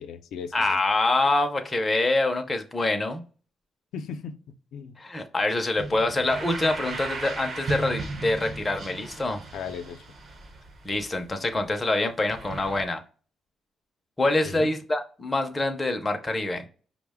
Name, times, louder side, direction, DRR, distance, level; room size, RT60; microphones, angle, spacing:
voice 1, 0.0-0.8 3.9-4.4 4.7-5.0 9.5-10.0 14.4-14.7, left 6 dB, 85° left, 7 dB, 0.5 m, -36 dB
voice 2, 0.5-3.2 5.0-9.4 10.8-13.0 14.2-16.7, left 2 dB, 15° left, 5 dB, 0.5 m, -25 dB
sound 1, 5.8-11.8 12.3-12.9, right 3 dB, 35° right, 0.6 m, -36 dB
5.6 x 2.1 x 3.4 m, 0.39 s
cardioid pair, 160°, 0 cm